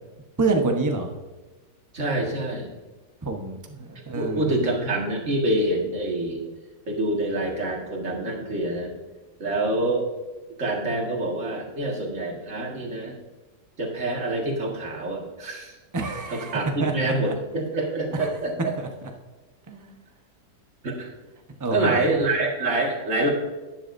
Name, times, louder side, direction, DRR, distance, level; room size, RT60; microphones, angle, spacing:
voice 1, 0.4-1.1 3.2-4.4 15.9-17.3 18.8-18.9 19.7-19.9 21.6-22.0, right 3 dB, 15° right, 3 dB, 0.7 m, -27 dB
voice 2, 1.9-2.7 4.1-6.4 6.9-8.9 9.4-10.0 10.6-13.2 13.8-15.8 16.3-18.8 20.8-21.1 21.7-23.3, right 2 dB, 45° right, 0 dB, 2.2 m, -26 dB
11.5 x 10.0 x 2.6 m, 1.2 s
omnidirectional pair, 1.9 m